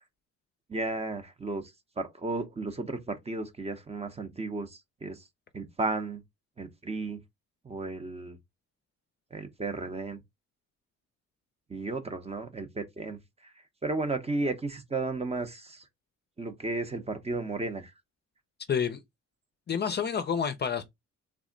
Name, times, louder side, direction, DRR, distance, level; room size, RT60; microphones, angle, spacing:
voice 1, 0.7-1.6 2.0-5.2 5.5-6.2 6.6-7.2 7.6-8.4 9.3-10.2 11.7-13.5 13.8-15.8 16.4-17.9, right 3 dB, 20° right, 0.6 m, -34 dB
voice 2, 18.7-19.0 19.7-20.8, left 7 dB, 35° left, 0.5 m, -28 dB
3.4 x 2.0 x 3.7 m
cardioid pair, 90°, 30 cm